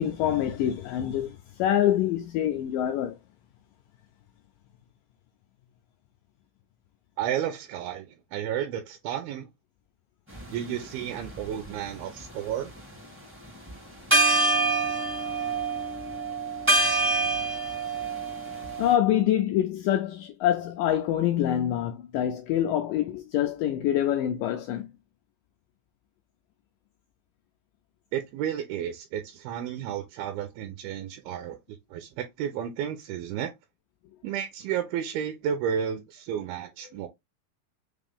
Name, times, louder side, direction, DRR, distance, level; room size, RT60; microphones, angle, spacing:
voice 1, 0.0-3.2 18.8-24.9, left 11 dB, 85° left, 1.9 m, -25 dB
voice 2, 7.2-9.5 10.5-12.7 28.1-31.6 31.9-33.5 34.2-37.1, right 9 dB, 80° right, 2.5 m, -32 dB
sound 1, 10.4-10.5 11.2-12.2 13.7-13.8 14.1-19.0, right 3 dB, 10° right, 0.6 m, -25 dB
5.9 x 2.5 x 3.5 m
omnidirectional pair, 4.4 m